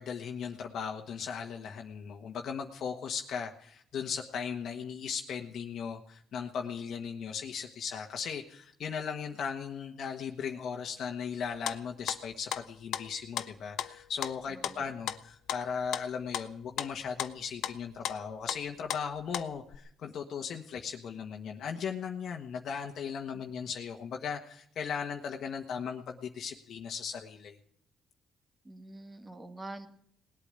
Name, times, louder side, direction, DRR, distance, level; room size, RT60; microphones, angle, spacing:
voice 1, 0.0-27.6, left 6 dB, 60° left, 2 dB, 1.4 m, -37 dB
sound 1, 11.4-12.6 12.9-19.7, left 11 dB, 75° left, 0.9 m, -37 dB
voice 2, 14.5-14.8 28.6-29.9, right 2 dB, 15° right, 7 dB, 1.7 m, -45 dB
19.5 x 8.4 x 9.0 m, 0.68 s
cardioid pair, 135°, 0 cm